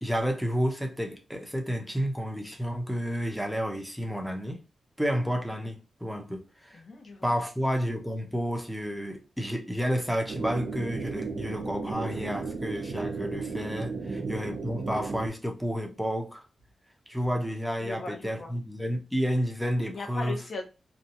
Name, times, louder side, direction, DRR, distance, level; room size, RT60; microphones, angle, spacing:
voice 1, 0.0-4.6 5.0-6.8 7.2-16.4 17.1-20.4, equal, ahead, 0.6 m, -31 dB
voice 2, 6.7-7.3 14.0-14.3 17.8-18.5 19.9-20.7, left 3 dB, 50° left, 0.8 m, -39 dB
sound 1, 10.3-15.3, right 4 dB, 50° right, 0.6 m, -34 dB
2.8 x 2.3 x 2.7 m
wide cardioid pair, 120°, 0 cm